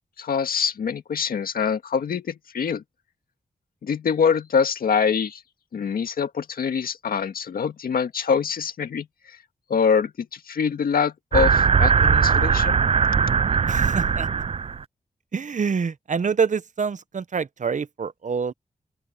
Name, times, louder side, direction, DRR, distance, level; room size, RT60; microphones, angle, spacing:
voice 1, 0.2-2.8 3.8-5.4 5.7-9.4 9.7-12.8, left 6 dB, 90° left, 1.9 m, -24 dB
sound 1, 11.3-14.8, right 6 dB, 40° right, 0.4 m, -20 dB
voice 2, 13.7-14.3 15.3-18.5, right 5 dB, 55° right, 0.9 m, -26 dB
open air
cardioid pair, 50°, 15 cm